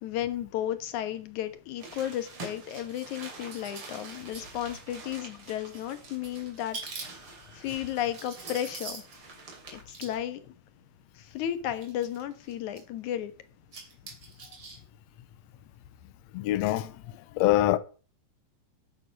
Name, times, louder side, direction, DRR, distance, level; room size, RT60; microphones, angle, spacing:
voice 1, 0.0-7.1 7.5-9.0 9.7-10.4 11.2-13.3, left 11 dB, 65° left, 2.5 m, -34 dB
sound 1, 1.8-10.2 11.0-11.1 11.7-12.8 13.5-14.8 15.1-15.2, right 4 dB, 40° right, 3.7 m, -44 dB
voice 2, 16.3-16.9 17.4-17.8, left 15 dB, 90° left, 1.5 m, -23 dB
13.0 x 9.5 x 5.3 m
omnidirectional pair, 3.9 m